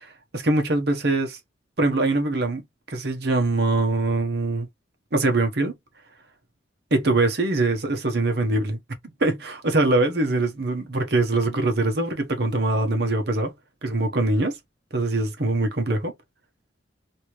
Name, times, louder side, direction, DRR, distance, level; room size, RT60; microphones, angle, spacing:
voice 1, 0.0-1.4 1.8-2.6 2.9-4.7 5.1-5.7 6.9-8.8 9.2-13.5 13.8-14.6 14.9-16.1, right 2 dB, 55° right, 0.9 m, -23 dB
3.1 x 2.8 x 3.1 m
head